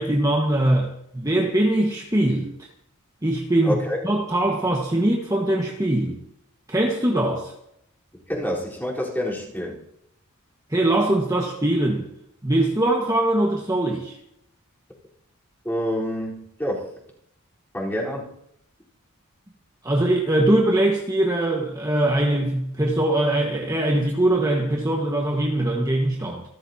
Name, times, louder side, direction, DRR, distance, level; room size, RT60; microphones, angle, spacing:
voice 1, 0.0-2.5 3.2-3.8 4.0-6.2 6.7-7.5 10.7-12.0 12.4-14.1 19.8-26.4, right 1 dB, 15° right, -1 dB, 1.6 m, -22 dB
voice 2, 3.6-4.0 8.3-9.8 15.6-16.9 17.7-18.3, equal, 10° left, -5 dB, 4.2 m, -27 dB
27.5 x 13.5 x 2.9 m, 0.75 s
head